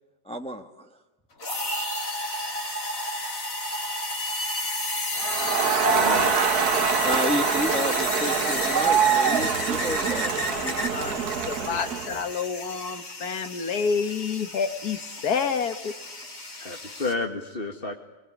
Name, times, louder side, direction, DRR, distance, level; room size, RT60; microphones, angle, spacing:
voice 1, 0.2-1.0 7.0-10.3, equal, 5° left, 5 dB, 1.2 m, -31 dB
sound 1, 1.4-17.1, left 1 dB, 60° left, 3.7 m, -32 dB
Crowd, 5.2-12.2, right 7 dB, 80° right, 1.8 m, -25 dB
voice 2, 5.8-6.3 16.6-17.9, left 3 dB, 35° left, 3 dB, 1.7 m, -31 dB
voice 3, 10.5-15.9, left 6 dB, 80° left, 10 dB, 2.0 m, -29 dB
24.5 x 22.0 x 9.9 m, 1.1 s
omnidirectional pair, 1.6 m